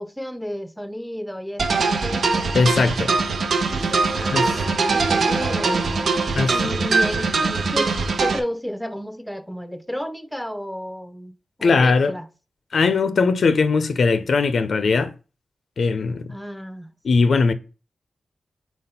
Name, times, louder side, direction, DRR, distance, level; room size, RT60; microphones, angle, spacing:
voice 1, 0.0-2.2 4.1-6.0 6.5-12.3 16.3-16.9, equal, 5° left, 0.6 m, -32 dB
sound 1, 1.6-8.4, right 4 dB, 80° right, 0.9 m, -22 dB
voice 2, 2.5-3.1 4.3-4.5 6.4-6.6 11.6-12.1 12.7-15.1 15.8-16.3 17.0-17.5, left 4 dB, 70° left, 0.5 m, -19 dB
sound 2, 3.4-7.7, right 3 dB, 50° right, 0.8 m, -34 dB
4.6 x 4.2 x 5.4 m
wide cardioid pair, 85°, 0 cm